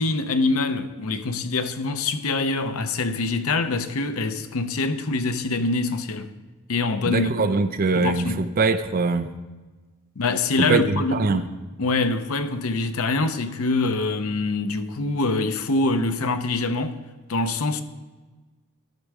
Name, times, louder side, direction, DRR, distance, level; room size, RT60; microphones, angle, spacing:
voice 1, 0.0-6.3 6.7-7.5 7.9-8.4 10.2-11.4 11.8-17.0 17.3-17.8, left 3 dB, 75° left, 0.7 m, -24 dB
voice 2, 7.0-9.3 10.6-11.4, right 3 dB, 40° right, 0.5 m, -22 dB
12.0 x 6.5 x 4.7 m
head